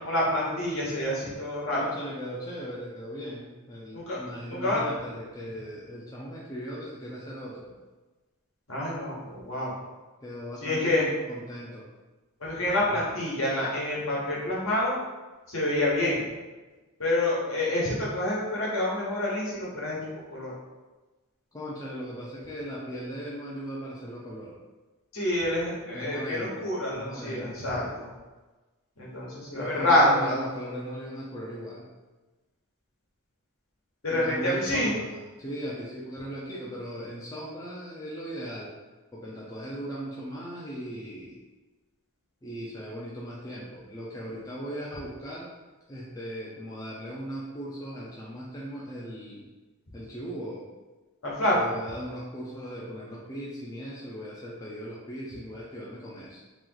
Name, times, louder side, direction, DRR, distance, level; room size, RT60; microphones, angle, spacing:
voice 1, 0.0-1.8 3.9-4.8 8.7-9.7 10.6-11.1 12.4-15.0 15.5-16.2 17.0-20.5 25.1-28.1 29.0-30.4 34.0-35.0 51.2-51.7, left 1 dB, 60° left, -5 dB, 1.2 m, -27 dB
voice 2, 1.7-7.7 10.2-11.9 12.9-13.0 21.5-24.6 25.9-26.6 26.9-28.0 29.5-31.9 34.1-38.7 39.1-41.4 42.4-45.5 45.9-49.4 49.9-50.6 51.5-56.4, equal, 15° left, -5 dB, 0.4 m, -38 dB
3.0 x 2.9 x 3.8 m, 1.2 s
head